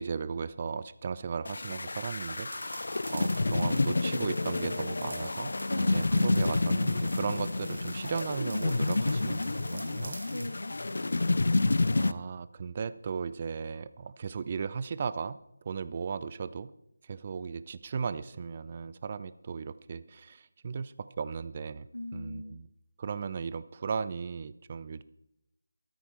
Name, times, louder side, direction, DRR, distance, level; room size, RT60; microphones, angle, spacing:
voice 1, 0.0-10.2 12.0-15.4 15.6-16.7 17.0-22.7 23.0-25.0, right 5 dB, 30° right, 16 dB, 0.5 m, -36 dB
sound 1, 1.4-12.1, left 2 dB, 55° left, 0.5 m, -29 dB
sound 2, 2.4-10.6, right 2 dB, 55° right, 1.7 m, -47 dB
voice 2, 5.7-6.1 10.3-11.5 21.9-22.6, left 1 dB, 80° left, 8 dB, 1.4 m, -40 dB
14.5 x 13.0 x 4.5 m, 0.81 s
figure-of-eight pair, 160°, 0 cm